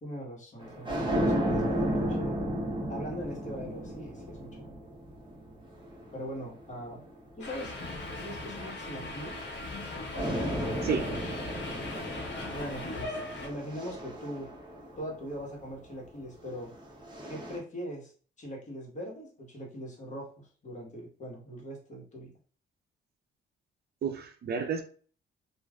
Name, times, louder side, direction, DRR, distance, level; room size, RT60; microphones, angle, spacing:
voice 1, 0.0-2.4 2.9-4.7 6.1-7.0 7.4-7.8 8.2-9.3 12.5-14.5 15.0-16.7 17.3-18.1 18.4-22.3, equal, 40° left, 1.3 m, -41 dB
sound 1, 0.6-7.2 7.9-9.8 10.1-15.5 16.4-17.6, equal, 25° right, 0.9 m, -34 dB
Subway metro underground, 7.4-13.5, left 2 dB, 65° left, 0.9 m, -39 dB
voice 2, 10.8-11.1 24.0-24.8, right 6 dB, 55° right, 0.5 m, -31 dB
3.0 x 2.5 x 2.4 m
cardioid pair, 90°, 20 cm